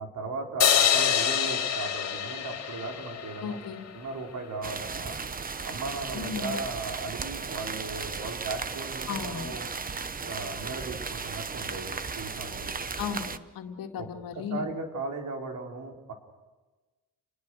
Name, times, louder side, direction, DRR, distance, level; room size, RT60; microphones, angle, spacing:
voice 1, 0.0-3.6 3.9-5.2 5.6-9.7 10.2-12.7 14.0-16.1, right 3 dB, 60° right, 2 dB, 5.0 m, -37 dB
sound 1, 0.6-3.9, left 8 dB, 50° left, 2.7 m, -26 dB
voice 2, 3.4-3.9 6.1-6.6 9.1-9.6 13.0-14.6, left 7 dB, 90° left, 4 dB, 2.4 m, -35 dB
sound 2, 4.6-13.4, right 5 dB, 25° right, 0.9 m, -36 dB
29.5 x 21.0 x 6.6 m, 1.2 s
cardioid pair, 120°, 34 cm